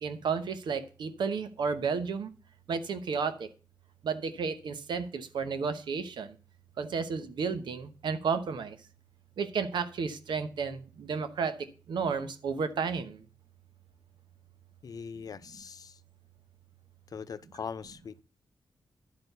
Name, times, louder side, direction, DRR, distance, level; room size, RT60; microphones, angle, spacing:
voice 1, 0.0-2.3 2.7-3.5 4.0-6.3 6.8-8.8 9.4-11.5 11.9-13.2, right 5 dB, 85° right, 0.9 m, -32 dB
voice 2, 14.8-15.9 17.1-18.2, left 6 dB, 55° left, 0.7 m, -41 dB
11.5 x 4.6 x 6.7 m
wide cardioid pair, 100°, 8 cm